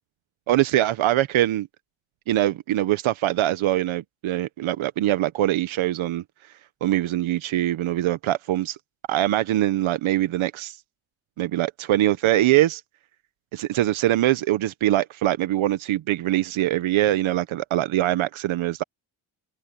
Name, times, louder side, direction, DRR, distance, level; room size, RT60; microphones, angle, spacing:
voice 1, 0.5-1.7 2.3-6.2 6.8-8.8 9.1-10.8 11.4-12.8 13.5-18.8, right 14 dB, 80° right, 1.0 m, -23 dB
open air
cardioid pair, 85°, 47 cm